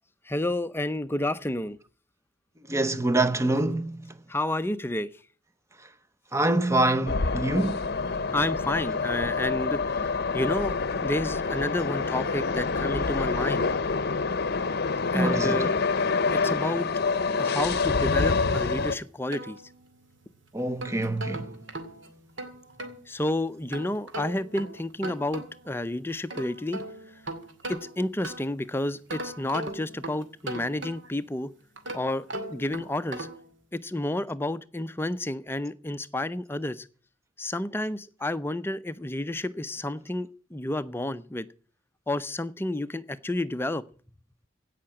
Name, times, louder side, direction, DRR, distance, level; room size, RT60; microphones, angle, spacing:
voice 1, 0.3-1.8 4.3-5.1 8.3-13.7 15.1-15.7 16.3-16.9 17.4-19.6 23.1-26.8 27.7-31.5 31.9-32.2 32.5-33.3 33.7-36.8 37.4-41.5 42.1-43.8, left 1 dB, 10° left, 0.6 m, -30 dB
voice 2, 2.7-4.0 6.3-7.8 15.1-15.7 20.5-21.4, right 2 dB, 15° right, 0.8 m, -25 dB
sound 1, 7.1-19.0, left 4 dB, 55° left, 0.8 m, -27 dB
sound 2, 18.8-20.1 20.6-23.0 23.7-25.7 26.1-28.6 29.1-31.3 31.8-33.5, right 1 dB, 70° right, 2.4 m, -39 dB
16.5 x 5.8 x 8.8 m
head